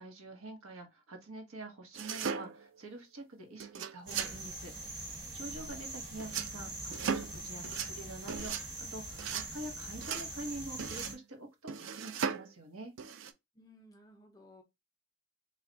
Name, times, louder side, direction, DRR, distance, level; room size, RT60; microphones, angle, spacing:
voice 1, 0.0-12.9, right 2 dB, 80° right, 1.0 m, -46 dB
sound 1, 1.9-2.8 3.6-4.4 6.2-6.5 6.9-7.4 7.6-7.9 8.3-8.6 9.2-9.5 10.0-10.3 10.8-11.2 11.7-12.5 13.0-13.3, right 6 dB, 60° right, 0.4 m, -37 dB
sound 2, 4.1-11.1, right 1 dB, 20° right, 1.3 m, -43 dB
voice 2, 13.5-14.6, left 1 dB, 15° left, 0.5 m, -58 dB
3.2 x 2.3 x 3.8 m
head